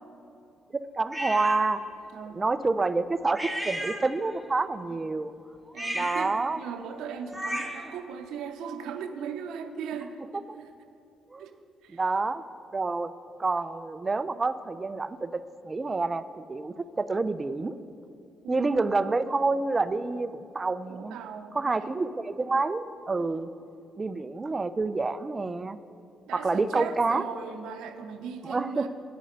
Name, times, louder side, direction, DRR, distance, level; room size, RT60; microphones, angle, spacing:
voice 1, 0.7-1.8 2.3-5.3 5.9-6.6 10.5-10.6 11.3-11.5 11.9-12.4 12.7-13.1 13.4-17.8 18.5-21.2 21.5-23.5 24.0-25.8 26.3-27.2 28.4-28.9, right 3 dB, 25° right, 13 dB, 0.4 m, -28 dB
sound 1, 1.1-1.6 3.4-4.4 5.7-7.9, equal, ahead, 1.3 m, -35 dB
voice 2, 5.7-10.2 10.5-10.7 11.4-11.5 11.8-12.0 18.4-18.7 20.9-21.9 26.3-28.9, right 6 dB, 90° right, 7 dB, 0.8 m, -38 dB
10.5 x 8.5 x 5.2 m, 2.6 s
cardioid pair, 90°, 0 cm